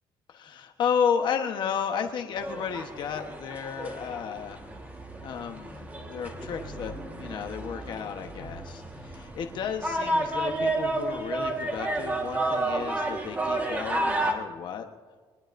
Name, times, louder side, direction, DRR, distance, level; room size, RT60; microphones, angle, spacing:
voice 1, 0.3-4.6 5.2-14.9, left 7 dB, 50° left, 5 dB, 1.1 m, -32 dB
sound 1, 2.4-14.3, right 2 dB, 15° right, 1.5 m, -31 dB
22.0 x 21.0 x 2.6 m, 1.5 s
cardioid pair, 165°, 10 cm